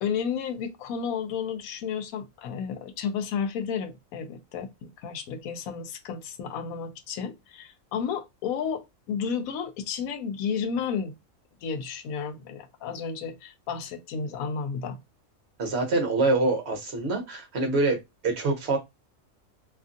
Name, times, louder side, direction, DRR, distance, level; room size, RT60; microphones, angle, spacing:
voice 1, 0.0-11.1 11.6-15.0, left 6 dB, 85° left, 1.0 m, -32 dB
voice 2, 15.6-18.8, right 3 dB, 55° right, 1.1 m, -25 dB
2.8 x 2.4 x 2.4 m
omnidirectional pair, 1.4 m